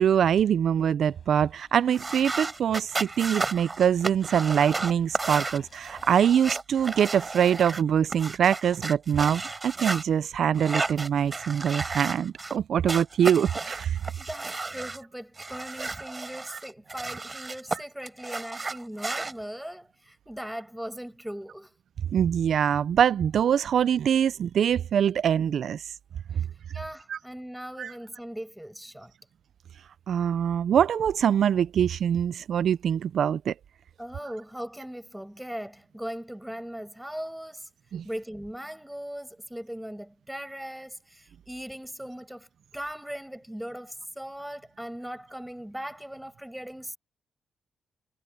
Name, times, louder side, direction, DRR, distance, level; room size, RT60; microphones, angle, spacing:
voice 1, 0.0-14.0 18.7-18.8 22.1-25.9 26.4-26.5 27.1-27.2 27.8-27.9 30.1-33.5 37.9-38.0, right 8 dB, 70° right, 0.3 m, -24 dB
sound 1, 1.0-6.2, left 7 dB, 55° left, 7.5 m, -58 dB
sound 2, 1.9-10.0 10.5-12.6 12.9-15.0 15.4-17.8 18.1-19.3, right 3 dB, 25° right, 3.7 m, -33 dB
voice 2, 14.2-21.8 26.4-29.1 34.0-37.7 38.0-47.0, equal, 5° right, 5.5 m, -39 dB
cardioid pair, 95°, 0 cm